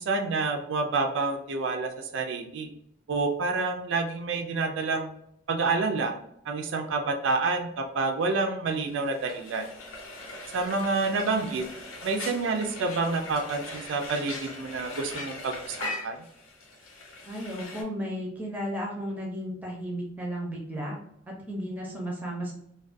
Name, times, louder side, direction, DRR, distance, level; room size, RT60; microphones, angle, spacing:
voice 1, 0.0-2.7 3.1-5.1 5.5-6.1 6.5-9.7 10.5-11.7 12.0-16.2, right 3 dB, 70° right, 4 dB, 0.3 m, -28 dB
Frying (food), 8.7-17.8, left 2 dB, 85° left, 0.6 m, -40 dB
voice 2, 17.2-21.0 21.3-22.5, equal, 10° right, -1 dB, 0.5 m, -34 dB
2.3 x 2.2 x 2.4 m, 0.75 s
head